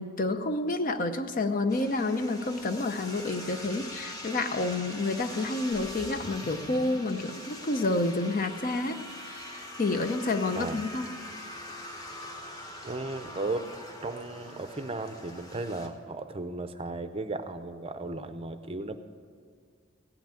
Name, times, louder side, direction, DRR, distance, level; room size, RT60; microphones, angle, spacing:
voice 1, 0.0-9.0 9.3-11.1, left 2 dB, 40° left, 9 dB, 0.6 m, -29 dB
sound 1, 1.7-15.9, left 1 dB, 20° left, 1.2 m, -43 dB
sound 2, 5.7-9.9, left 1 dB, 60° left, 1.1 m, -48 dB
voice 2, 12.8-13.7 14.0-19.0, right 2 dB, 30° right, 9 dB, 0.6 m, -35 dB
16.5 x 5.9 x 8.9 m, 2.1 s
head